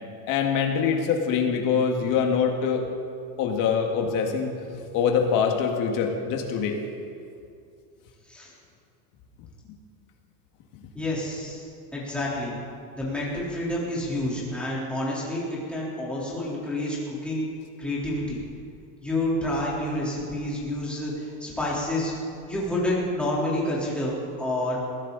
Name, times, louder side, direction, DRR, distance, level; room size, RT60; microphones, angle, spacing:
voice 1, 0.3-2.9 3.4-4.5 4.9-6.8, left 6 dB, 45° left, 2 dB, 2.0 m, -24 dB
voice 2, 10.9-12.5 13.0-17.5 17.8-18.4 19.0-22.1 22.5-24.8, left 1 dB, ahead, -7 dB, 3.7 m, -29 dB
21.0 x 15.5 x 4.1 m, 2.4 s
cardioid pair, 165°, 43 cm